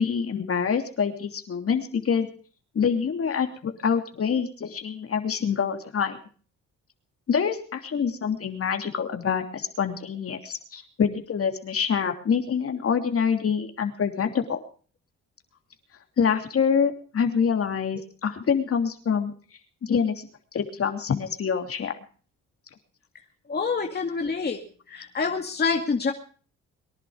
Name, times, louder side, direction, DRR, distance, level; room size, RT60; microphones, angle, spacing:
voice 1, 0.0-2.3 2.7-6.2 7.3-14.6 16.2-19.3 19.8-20.3 20.5-21.9, left 6 dB, 50° left, 6 dB, 3.0 m, -26 dB
voice 2, 23.5-24.6 24.9-26.1, left 4 dB, 35° left, 2 dB, 2.2 m, -26 dB
23.5 x 11.0 x 5.0 m, 0.42 s
cardioid pair, 90°, 30 cm